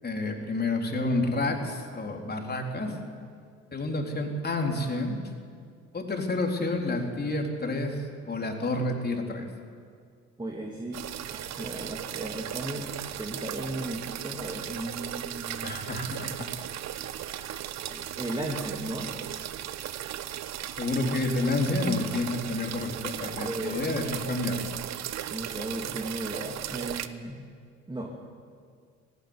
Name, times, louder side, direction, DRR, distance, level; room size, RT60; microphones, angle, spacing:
voice 1, 0.0-3.0 3.7-5.2 5.9-9.5 15.6-16.5 20.8-24.7, left 2 dB, 25° left, 2 dB, 4.0 m, -29 dB
voice 2, 2.8-3.1 10.4-11.0 11.3-12.9 13.2-15.8 17.9-19.1 23.4-23.9 25.3-27.4 27.9-28.1, right 1 dB, 10° right, 0 dB, 2.9 m, -36 dB
sound 1, 10.9-27.1, right 11 dB, 45° right, 1.1 m, -36 dB
18.5 x 16.5 x 10.0 m, 2.1 s
figure-of-eight pair, 60°, 37 cm